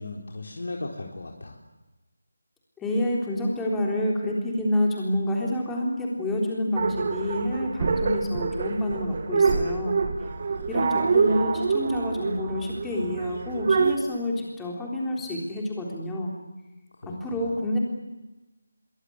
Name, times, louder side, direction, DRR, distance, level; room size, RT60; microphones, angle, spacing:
voice 1, 0.0-1.6 17.0-17.6, left 2 dB, 65° left, 1 dB, 4.0 m, -37 dB
voice 2, 2.8-10.0 10.7-16.3 17.1-17.8, left 1 dB, 5° left, -2 dB, 3.7 m, -28 dB
sound 1, 6.8-14.0, right 4 dB, 35° right, 2.1 m, -26 dB
23.5 x 23.0 x 9.8 m, 1.1 s
figure-of-eight pair, 175°, 0 cm